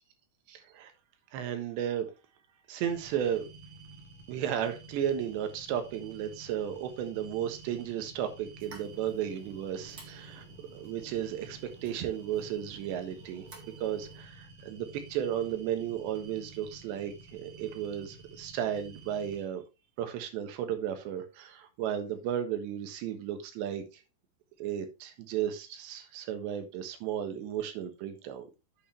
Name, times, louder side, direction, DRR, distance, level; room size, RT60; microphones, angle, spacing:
voice 1, 0.5-0.9 1.3-2.1 2.7-3.5 4.3-10.5 10.7-13.5 13.8-19.6 20.0-24.0 24.6-28.5, right 10 dB, 85° right, 3.7 m, -34 dB
sound 1, 2.9-19.4, right 3 dB, 65° right, 3.6 m, -51 dB
sound 2, 8.6-14.2, right 4 dB, 40° right, 2.4 m, -54 dB
8.7 x 8.4 x 3.4 m
omnidirectional pair, 4.9 m